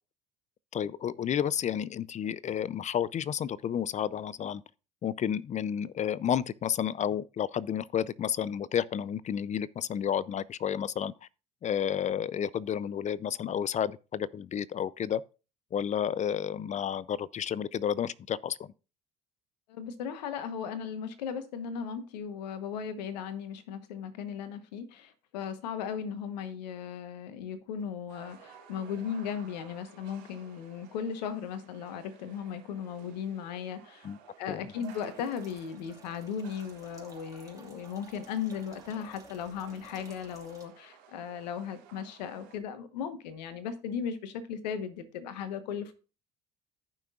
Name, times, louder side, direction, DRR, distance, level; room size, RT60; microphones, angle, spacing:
voice 1, 0.7-4.6 5.0-11.1 11.6-15.2 15.7-18.7 34.0-34.2 34.5-34.6, left 9 dB, 35° left, 0.4 m, -31 dB
voice 2, 19.7-34.1 34.4-45.9, left 7 dB, 85° left, 1.1 m, -37 dB
sound 1, 28.1-42.6, right 8 dB, 85° right, 3.8 m, -55 dB
sound 2, 34.8-40.7, right 3 dB, 15° right, 2.7 m, -56 dB
14.5 x 5.8 x 2.4 m
hypercardioid pair, 65°, 21 cm